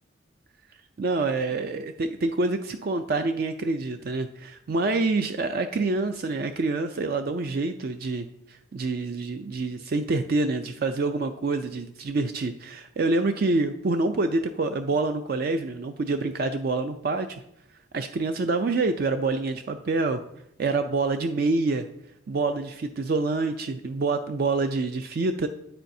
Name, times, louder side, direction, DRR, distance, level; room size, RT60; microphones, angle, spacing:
voice 1, 1.0-8.3 8.7-17.4 17.9-20.2 20.6-21.9 22.3-25.5, right 3 dB, 45° right, 8 dB, 0.4 m, -26 dB
9.2 x 8.6 x 2.7 m, 0.79 s
head